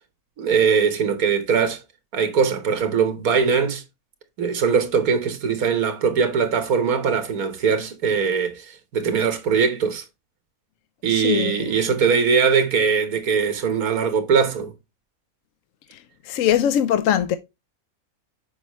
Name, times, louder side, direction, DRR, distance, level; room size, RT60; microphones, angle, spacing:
voice 1, 0.4-1.8 2.1-3.8 4.4-10.0 11.0-14.7, right 6 dB, 75° right, 1.7 m, -21 dB
voice 2, 11.1-11.7 15.9-17.4, left 10 dB, 65° left, 0.9 m, -21 dB
6.9 x 4.8 x 3.0 m
omnidirectional pair, 1.6 m